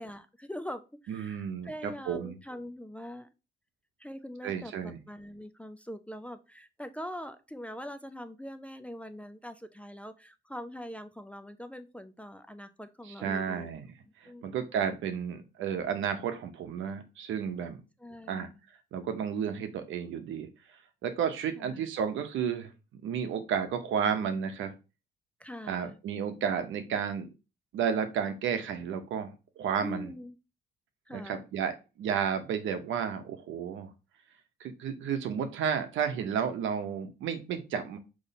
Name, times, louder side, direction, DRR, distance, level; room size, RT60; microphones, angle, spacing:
voice 1, 0.0-3.3 4.0-13.7 14.2-14.4 18.0-18.6 21.6-21.9 25.4-26.0 29.8-30.4 31.1-31.5, equal, 5° left, 9 dB, 0.4 m, -43 dB
voice 2, 1.1-2.4 4.4-5.0 13.2-13.8 14.2-17.8 18.3-18.5 18.9-20.5 21.0-22.7 23.0-24.7 25.7-27.3 27.7-30.1 31.1-33.9 34.6-38.0, right 7 dB, 80° right, 7 dB, 0.8 m, -32 dB
4.0 x 3.1 x 4.1 m, 0.29 s
cardioid pair, 90°, 20 cm